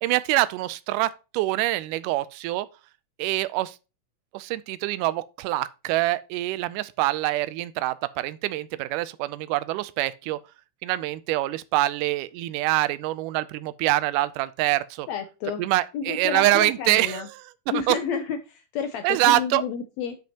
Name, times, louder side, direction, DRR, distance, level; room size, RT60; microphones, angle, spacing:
voice 1, 0.0-2.7 3.2-3.8 4.3-10.4 10.8-15.1 15.6-17.4 17.9-18.0 19.0-19.6, right 16 dB, 80° right, 1.9 m, -25 dB
voice 2, 15.1-15.6 15.9-17.3 17.7-20.2, left 7 dB, 85° left, 1.5 m, -30 dB
10.5 x 5.2 x 2.8 m
omnidirectional pair, 3.9 m